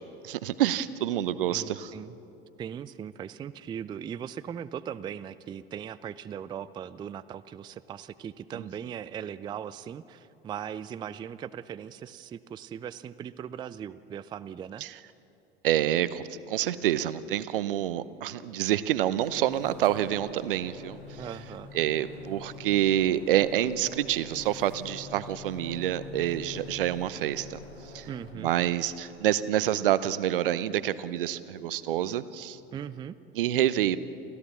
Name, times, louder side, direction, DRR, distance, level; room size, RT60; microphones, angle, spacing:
voice 1, 0.2-1.9 8.6-8.7 14.8-14.9 15.6-21.0 21.7-27.6 27.9-28.1 28.4-32.6 33.3-34.0, right 12 dB, 60° right, 16 dB, 0.8 m, -27 dB
voice 2, 1.5-2.2 2.6-14.9 21.2-21.7 28.1-28.5 32.7-33.2, right 8 dB, 15° right, 15 dB, 0.4 m, -39 dB
sound 1, 19.1-28.3, left 4 dB, 80° left, 2.9 m, -46 dB
29.5 x 13.5 x 7.2 m, 2.9 s
figure-of-eight pair, 75°, 30 cm